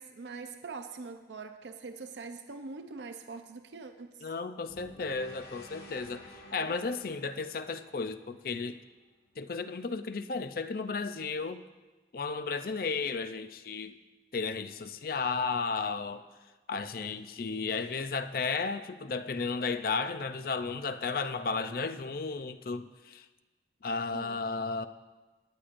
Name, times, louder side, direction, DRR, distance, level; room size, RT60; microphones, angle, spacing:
voice 1, 0.0-4.3 6.5-6.7 17.4-17.7 24.1-24.4, right 4 dB, 75° right, 7 dB, 0.6 m, -44 dB
voice 2, 4.2-6.2 6.5-8.8 9.4-11.6 12.1-13.9 14.3-16.3 16.7-23.3 23.8-24.9, left 4 dB, 50° left, 11 dB, 0.5 m, -34 dB
sound 1, 4.7-8.9, left 1 dB, 80° left, 3.1 m, -52 dB
20.0 x 10.0 x 2.6 m, 1.2 s
head